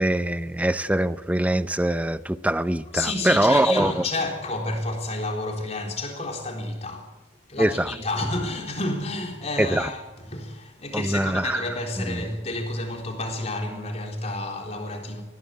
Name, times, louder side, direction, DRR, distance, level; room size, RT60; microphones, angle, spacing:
voice 1, 0.0-4.1 7.6-7.9 9.6-9.9 10.9-11.6 12.1-12.2, right 1 dB, 10° right, 0.6 m, -23 dB
voice 2, 2.9-7.1 7.5-15.2, left 2 dB, 35° left, 3.8 m, -30 dB
20.0 x 16.0 x 9.4 m
head